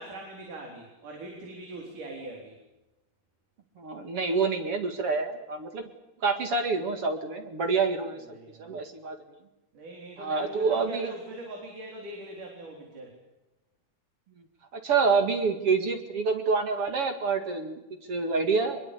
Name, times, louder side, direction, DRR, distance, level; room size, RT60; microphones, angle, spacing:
voice 1, 0.0-2.6 8.1-8.8 9.7-13.2 18.1-18.2, right 1 dB, 75° right, 1 dB, 5.5 m, -42 dB
voice 2, 3.8-5.9 6.2-9.2 10.2-11.1 14.7-17.8 18.1-18.8, right 4 dB, 50° right, 6 dB, 2.7 m, -27 dB
24.0 x 22.5 x 8.4 m, 0.99 s
omnidirectional pair, 3.6 m